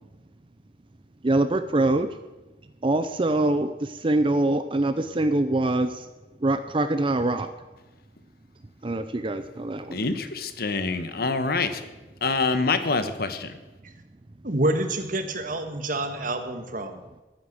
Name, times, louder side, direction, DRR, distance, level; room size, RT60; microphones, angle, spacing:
voice 1, 1.2-2.1 2.8-3.7 4.0-5.9 6.4-7.5 8.8-10.0, right 2 dB, 30° right, 9 dB, 0.6 m, -23 dB
voice 2, 9.9-11.7 12.2-13.5, left 3 dB, 60° left, 10 dB, 1.2 m, -25 dB
voice 3, 14.4-17.0, right 1 dB, 50° right, 7 dB, 1.5 m, -27 dB
12.0 x 10.5 x 8.0 m, 1.1 s
head